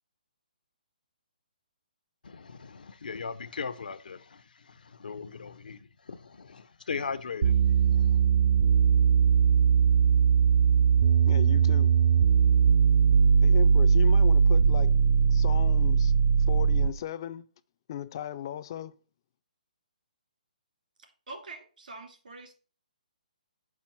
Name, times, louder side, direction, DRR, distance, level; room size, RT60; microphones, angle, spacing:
voice 1, 2.2-5.8 6.1-8.1, left 5 dB, 85° left, 0.7 m, -39 dB
sound 1, 7.4-17.0, right 6 dB, 50° right, 0.4 m, -21 dB
voice 2, 11.3-11.9 13.4-14.9 15.3-16.1 16.5-17.5 17.9-18.9, left 11 dB, 30° left, 0.3 m, -37 dB
voice 3, 21.0-22.5, right 3 dB, 80° right, 2.6 m, -45 dB
6.1 x 5.3 x 4.4 m
hypercardioid pair, 165°, 5 cm